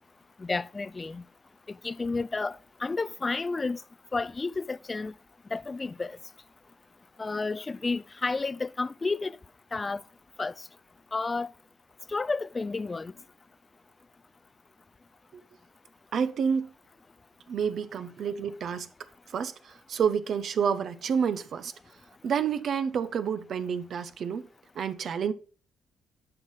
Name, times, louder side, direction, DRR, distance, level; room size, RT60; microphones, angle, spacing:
voice 1, 0.4-1.2 1.7-3.8 4.1-5.1 5.5-6.2 7.2-9.4 9.7-10.0 10.4-10.5 11.1-11.5 12.1-13.1, left 3 dB, 25° left, 0.4 m, -31 dB
voice 2, 16.1-16.7 17.5-18.9 19.3-21.7 22.2-24.5 24.7-25.3, right 7 dB, 60° right, 0.9 m, -29 dB
10.5 x 5.8 x 5.7 m
cardioid pair, 90°, 0 cm